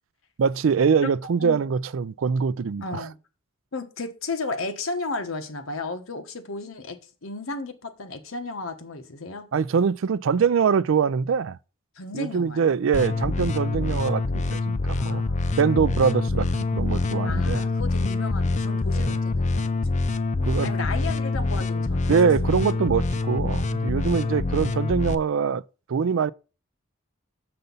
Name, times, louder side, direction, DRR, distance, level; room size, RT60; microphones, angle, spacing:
voice 1, 0.4-3.1 9.5-11.6 12.1-15.2 15.6-17.6 18.9-19.1 20.4-20.7 22.1-25.6 25.9-26.3, right 6 dB, 65° right, 0.4 m, -23 dB
voice 2, 2.8-3.1 3.7-9.5 11.9-12.8 13.1-13.2 14.9-15.5 17.2-20.0 20.6-22.2 22.4-22.6 24.1-24.4, left 3 dB, 80° left, 1.2 m, -34 dB
sound 1, 12.9-25.1, left 3 dB, 35° left, 0.5 m, -25 dB
6.8 x 6.7 x 3.9 m
head